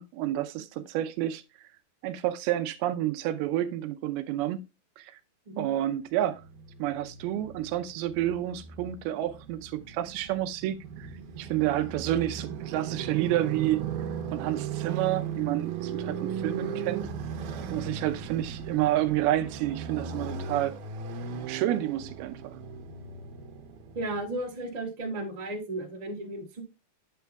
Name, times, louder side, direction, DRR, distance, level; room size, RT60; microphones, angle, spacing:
voice 1, 0.0-1.4 2.0-4.6 5.0-5.1 5.6-6.4 6.8-11.1 11.4-13.8 14.3-17.1 17.7-20.8 21.5-22.6, right 13 dB, 90° right, 2.6 m, -29 dB
Motorcycle, 6.2-24.4, right 7 dB, 70° right, 2.2 m, -37 dB
voice 2, 23.9-26.6, right 2 dB, 20° right, 1.1 m, -34 dB
9.3 x 8.0 x 2.3 m
omnidirectional pair, 4.4 m